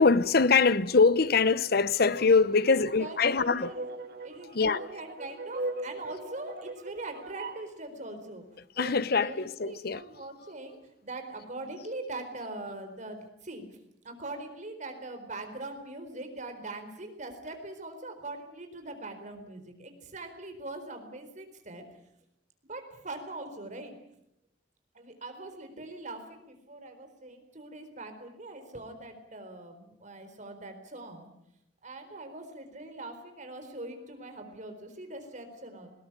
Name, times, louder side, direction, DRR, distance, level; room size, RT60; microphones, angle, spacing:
voice 1, 0.0-3.7 4.5-4.8 8.8-10.0, left 4 dB, 60° left, 0.9 m, -23 dB
sound 1, 2.0-7.7, right 2 dB, 60° right, 2.3 m, -40 dB
voice 2, 2.6-3.8 4.2-8.4 8.7-13.6 14.0-22.0 22.7-24.0 24.9-31.3 31.8-35.9, right 2 dB, 45° right, 4.3 m, -42 dB
21.0 x 18.5 x 9.9 m
head